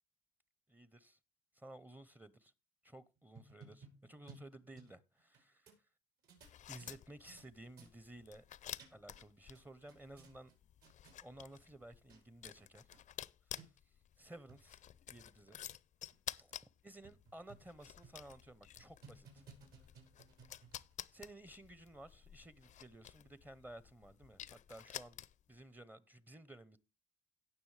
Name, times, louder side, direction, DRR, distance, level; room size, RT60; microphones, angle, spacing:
voice 1, 0.7-1.2 1.6-2.5 2.8-5.7 6.7-8.4 8.9-10.5 11.2-12.9 14.2-14.8 15.1-15.6 16.4-16.5 16.8-19.4 21.1-25.2 25.5-26.8, right 1 dB, 10° right, 0.7 m, -55 dB
sound 1, 3.2-5.4 5.7-5.8 6.2-7.5 7.8-7.9 8.5-9.2 9.5-10.5 10.8-11.2 11.8-11.9 12.1-12.2 12.6-12.7 12.9-13.0 13.6-13.7 14.3-14.6 15.1-15.2 15.5-15.6 16.1-16.2 16.5-16.6 17.0-17.7 18.0-18.3 18.8-20.9, right 4 dB, 70° right, 5.0 m, -59 dB
sound 2, 6.4-25.6, left 11 dB, 45° left, 0.5 m, -52 dB
17.5 x 6.1 x 3.2 m
cardioid pair, 110°, 17 cm